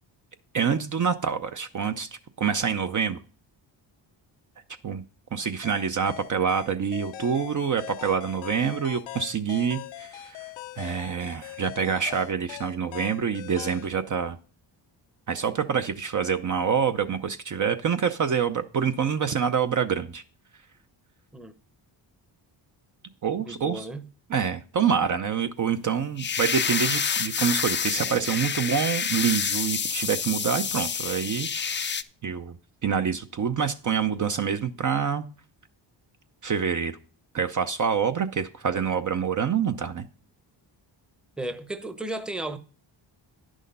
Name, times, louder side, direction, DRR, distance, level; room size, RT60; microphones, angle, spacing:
voice 1, 0.5-2.1 2.4-3.2 4.8-5.0 5.3-10.5 10.8-14.4 15.3-20.2 23.2-23.9 24.3-32.0 32.2-32.6 32.8-35.2 36.4-36.9 37.3-40.1, right 7 dB, 40° right, 0.6 m, -26 dB
sound 1, 5.6-13.9, left 13 dB, 75° left, 0.7 m, -41 dB
voice 2, 23.4-24.1 41.4-42.6, right 2 dB, ahead, 0.8 m, -34 dB
sound 2, 26.2-32.0, left 6 dB, 25° left, 0.4 m, -28 dB
10.0 x 6.3 x 5.3 m
cardioid pair, 105°, 45 cm